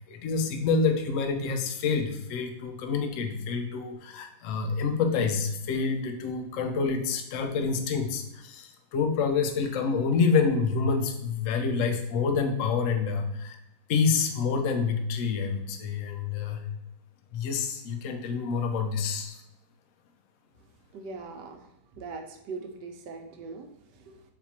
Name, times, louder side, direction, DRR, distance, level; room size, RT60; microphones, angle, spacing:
voice 1, 0.0-13.6 13.9-16.6 17.3-19.4, left 5 dB, 65° left, 5 dB, 0.8 m, -27 dB
voice 2, 20.9-24.2, right 4 dB, 80° right, 5 dB, 1.3 m, -41 dB
4.2 x 4.1 x 2.8 m, 0.86 s
omnidirectional pair, 1.8 m